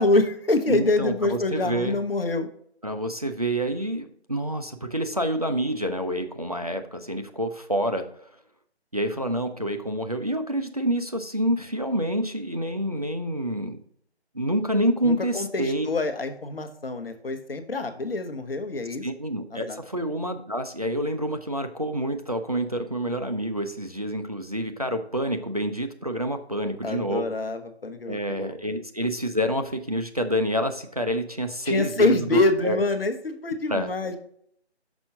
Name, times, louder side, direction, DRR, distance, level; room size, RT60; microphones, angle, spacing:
voice 1, 0.0-2.5 15.0-19.1 19.5-19.8 26.8-28.5 31.6-34.2, left 2 dB, 55° left, 7 dB, 1.0 m, -26 dB
voice 2, 0.7-2.0 2.8-8.1 8.9-13.8 14.3-15.9 19.0-27.3 28.1-32.8 33.7-33.9, equal, 35° right, 6 dB, 0.4 m, -27 dB
6.1 x 5.4 x 3.7 m, 0.66 s
figure-of-eight pair, 155°, 34 cm